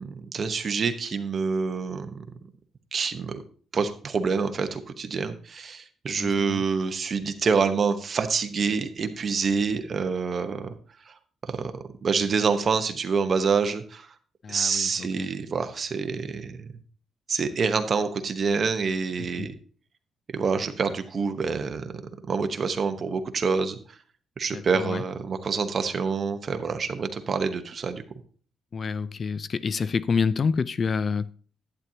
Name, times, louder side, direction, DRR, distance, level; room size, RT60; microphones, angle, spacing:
voice 1, 0.0-2.3 2.9-3.4 3.7-10.7 11.5-11.7 12.0-14.1 14.5-16.6 17.3-19.5 20.3-21.9 22.3-23.8 24.4-28.0, right 5 dB, 35° right, 1.0 m, -27 dB
voice 2, 6.1-6.6 14.4-15.3 19.2-19.5 24.5-25.0 28.7-31.3, left 5 dB, 35° left, 0.3 m, -28 dB
11.0 x 9.0 x 2.8 m
cardioid pair, 145°, 0 cm